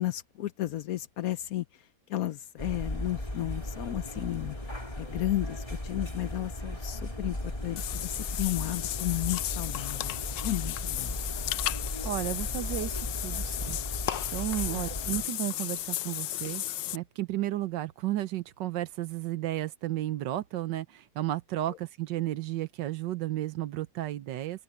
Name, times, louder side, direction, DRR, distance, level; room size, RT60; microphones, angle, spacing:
voice 1, 0.0-4.6 5.0-11.2 14.7-14.9 21.7-21.8, left 15 dB, 65° left, 1.0 m, -33 dB
sound 1, 2.6-15.3, left 1 dB, 20° left, 3.6 m, -36 dB
Water / Bathtub (filling or washing), 7.8-17.0, left 14 dB, 90° left, 1.3 m, -34 dB
voice 2, 12.0-13.8 14.3-16.6 16.9-24.6, right 14 dB, 90° right, 1.5 m, -33 dB
open air
omnidirectional pair, 1.9 m